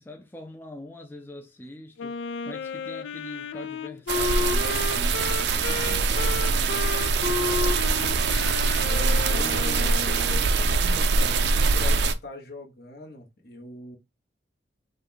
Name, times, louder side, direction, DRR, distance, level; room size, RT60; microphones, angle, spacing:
voice 1, 0.0-8.2, left 1 dB, 10° left, 0.4 m, -43 dB
Wind instrument woodwind instrument, 2.0-10.5, left 4 dB, 80° left, 0.4 m, -32 dB
sound 1, 4.1-12.1, right 4 dB, 65° right, 0.5 m, -23 dB
voice 2, 8.8-14.0, left 1 dB, 55° left, 1.1 m, -40 dB
5.1 x 2.3 x 3.8 m
head